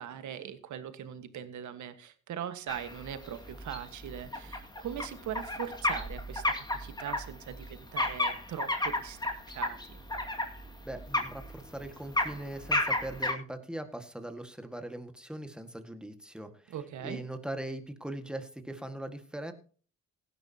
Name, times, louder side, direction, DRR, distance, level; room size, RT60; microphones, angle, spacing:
voice 1, 0.0-10.0 16.7-17.2, right 9 dB, 75° right, 10 dB, 1.6 m, -41 dB
sound 1, 2.7-13.3, left 2 dB, 15° left, 2.2 m, -33 dB
voice 2, 10.8-16.7 17.0-19.5, right 1 dB, 5° right, 7 dB, 1.8 m, -40 dB
17.0 x 11.0 x 2.9 m, 0.41 s
cardioid pair, 90°, 30 cm